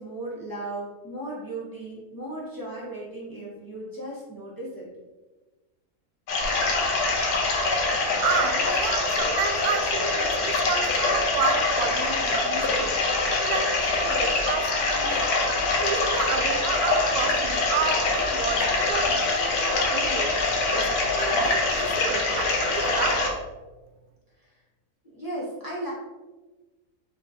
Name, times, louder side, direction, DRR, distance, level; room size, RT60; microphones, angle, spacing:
voice 1, 0.0-4.9 24.4-24.5 25.1-25.9, right 1 dB, 15° right, -6 dB, 1.2 m, -36 dB
sound 1, 6.3-23.3, left 3 dB, 80° left, 1.3 m, -24 dB
voice 2, 8.2-13.0 13.4-15.3 15.8-20.3 20.7-23.3, right 6 dB, 80° right, 5 dB, 1.1 m, -31 dB
4.4 x 3.4 x 2.7 m, 1.2 s
omnidirectional pair, 1.6 m